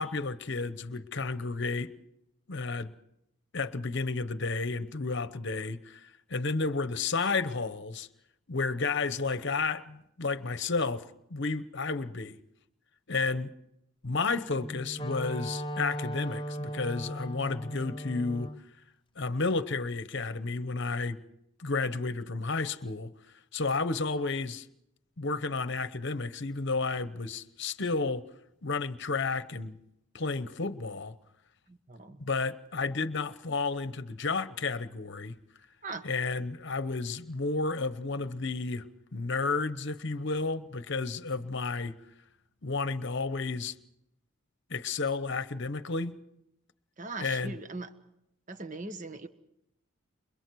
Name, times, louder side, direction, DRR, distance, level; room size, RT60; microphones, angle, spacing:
voice 1, 0.0-1.9 2.5-2.9 3.5-8.1 8.5-11.0 11.3-12.4 13.1-13.5 14.0-18.5 19.2-21.2 21.6-23.1 23.5-24.7 25.2-28.2 28.6-29.7 30.1-31.2 32.2-35.4 36.0-38.9 39.1-42.0 42.6-43.7 44.7-46.2 47.2-47.5, left 3 dB, 55° left, 0.9 m, -32 dB
Wind instrument woodwind instrument, 14.5-18.6, equal, 25° left, 0.7 m, -37 dB
voice 2, 31.7-32.2 35.8-36.1 47.0-47.9 48.5-49.3, right 3 dB, 35° right, 1.4 m, -40 dB
29.0 x 23.5 x 4.7 m
head